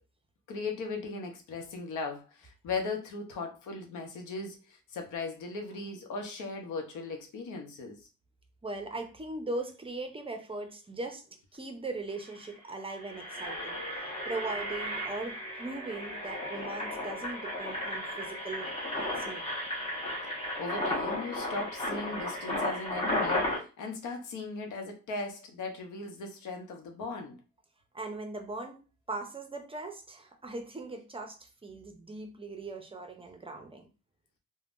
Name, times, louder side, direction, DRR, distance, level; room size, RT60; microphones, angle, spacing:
voice 1, 0.5-8.1 20.6-27.4, left 3 dB, 80° left, 0.8 m, -38 dB
voice 2, 8.6-11.2 11.5-19.4 27.9-33.9, right 2 dB, 20° right, 0.5 m, -39 dB
Engine, 11.9-12.0 12.2-12.4 12.9-23.6, left 1 dB, 20° left, 1.1 m, -34 dB
3.4 x 2.1 x 2.5 m
cardioid pair, 90°, 30 cm